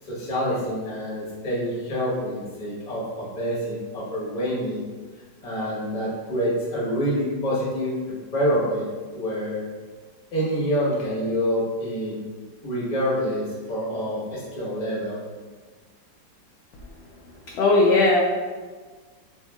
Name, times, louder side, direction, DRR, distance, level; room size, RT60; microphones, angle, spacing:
voice 1, 0.1-4.9 5.4-9.6 10.3-12.2 12.6-15.2, equal, 30° left, -5 dB, 0.9 m, -27 dB
voice 2, 17.5-18.2, left 2 dB, 70° left, -3 dB, 0.9 m, -17 dB
7.3 x 2.8 x 2.3 m, 1.4 s
omnidirectional pair, 2.1 m